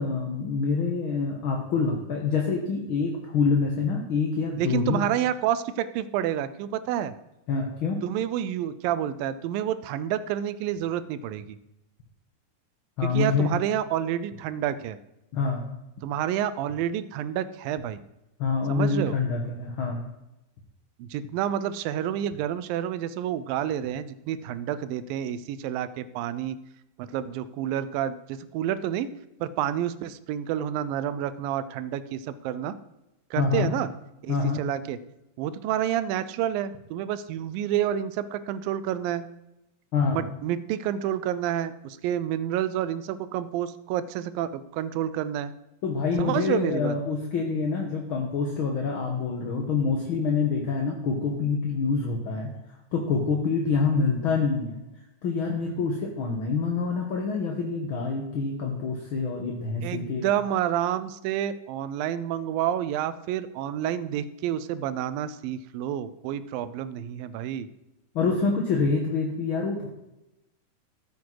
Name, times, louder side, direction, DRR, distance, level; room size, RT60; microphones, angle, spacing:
voice 1, 0.0-5.0 7.5-8.0 13.0-13.5 15.3-15.6 18.4-20.0 33.4-33.7 34.3-34.6 39.9-40.2 45.8-52.5 52.9-54.8 55.2-60.3 68.1-69.9, left 4 dB, 55° left, 1 dB, 1.6 m, -26 dB
voice 2, 4.6-7.1 8.0-11.6 13.0-15.0 16.0-18.0 18.7-19.2 21.0-26.6 27.0-29.1 29.4-32.8 33.3-33.9 34.2-35.0 35.4-39.3 40.1-45.5 46.2-47.0 59.8-67.7, right 10 dB, 90° right, 14 dB, 2.4 m, -29 dB
14.5 x 8.4 x 4.7 m, 0.92 s
omnidirectional pair, 4.0 m